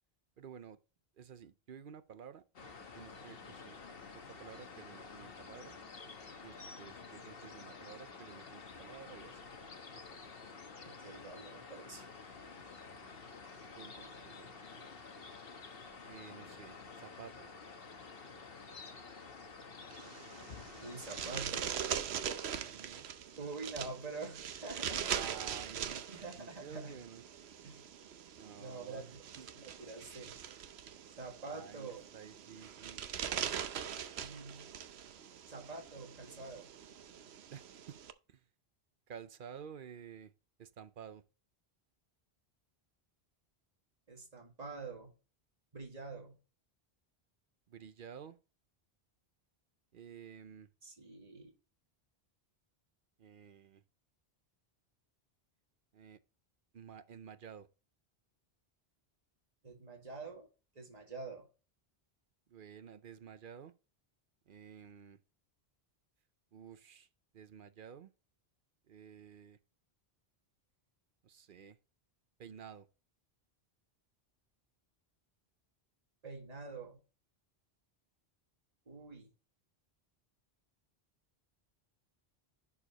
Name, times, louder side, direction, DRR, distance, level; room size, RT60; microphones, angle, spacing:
voice 1, 0.4-0.8 1.1-2.4 2.9-3.8 4.1-5.8 6.4-9.5 9.9-10.2 13.7-15.0 16.1-17.5 22.5-23.1 25.1-26.1 26.4-27.2 28.3-29.5 31.4-33.1 37.5-38.0 38.3-38.4 39.1-40.3 40.6-41.2 47.7-48.4 49.9-50.7 53.2-53.8 55.9-56.2 56.7-57.7 62.5-63.7 64.5-65.2 66.5-67.1 67.3-68.1 68.9-69.6 71.2-71.8 72.4-72.9, right 7 dB, 60° right, 0.8 m, -52 dB
sound 1, 2.6-21.4, left 4 dB, 65° left, 1.4 m, -50 dB
voice 2, 10.9-12.1 20.8-21.8 23.4-25.2 26.1-27.0 27.6-27.9 28.6-30.4 31.2-32.0 34.2-34.7 35.5-36.7 44.1-45.1 45.7-46.4 50.8-51.5 59.6-60.5 60.8-61.5 76.2-77.0 78.9-79.3, right 3 dB, 40° right, 2.0 m, -46 dB
sound 2, 19.9-38.1, right 8 dB, 90° right, 1.0 m, -42 dB
11.0 x 4.8 x 2.9 m
omnidirectional pair, 1.0 m